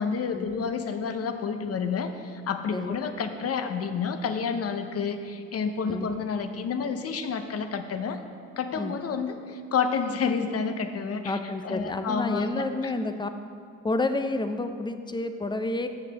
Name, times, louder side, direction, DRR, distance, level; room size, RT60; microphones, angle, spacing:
voice 1, 0.0-8.2 8.6-12.9, left 5 dB, 50° left, 7 dB, 0.8 m, -29 dB
voice 2, 11.2-13.3 13.8-15.9, left 2 dB, 15° left, 9 dB, 0.6 m, -29 dB
6.7 x 6.6 x 6.9 m, 2.3 s
cardioid pair, 90°, 30 cm